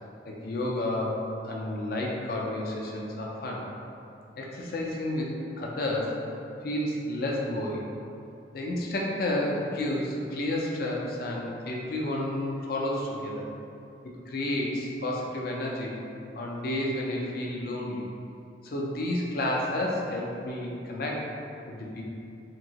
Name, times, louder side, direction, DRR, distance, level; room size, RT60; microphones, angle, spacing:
voice 1, 0.3-1.2 1.4-3.6 4.4-6.2 6.6-7.8 8.5-13.5 14.3-15.9 16.3-18.1 18.6-21.2 21.7-22.0, left 1 dB, 55° left, -2 dB, 0.4 m, -31 dB
2.9 x 2.7 x 2.8 m, 2.7 s
head